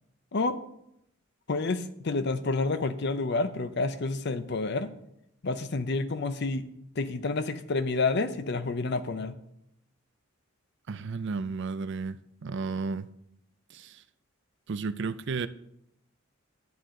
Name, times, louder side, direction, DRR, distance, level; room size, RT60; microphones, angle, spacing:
voice 1, 1.5-4.9 5.4-6.7 7.0-9.3, left 3 dB, 55° left, 0.6 m, -29 dB
voice 2, 10.9-13.1 13.7-14.0 14.7-15.5, right 4 dB, 60° right, 0.5 m, -33 dB
11.0 x 9.2 x 3.8 m
head